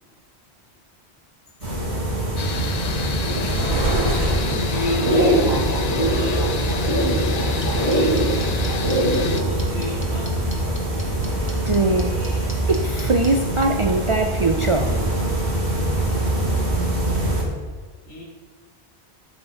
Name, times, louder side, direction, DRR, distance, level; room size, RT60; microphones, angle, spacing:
sound 1, 1.6-17.4, right 1 dB, 80° right, 2.6 m, -22 dB
sound 2, 2.4-9.4, left 6 dB, 45° left, 0.6 m, -30 dB
voice 1, 3.2-4.4 4.7-8.6 9.4-10.3 18.0-18.2, left 1 dB, 75° left, 3.2 m, -33 dB
sound 3, 7.6-13.3, left 1 dB, 10° left, 1.3 m, -38 dB
voice 2, 11.7-12.2 12.7-15.0, right 2 dB, 40° right, 0.5 m, -21 dB
12.5 x 7.3 x 3.7 m
omnidirectional pair, 1.1 m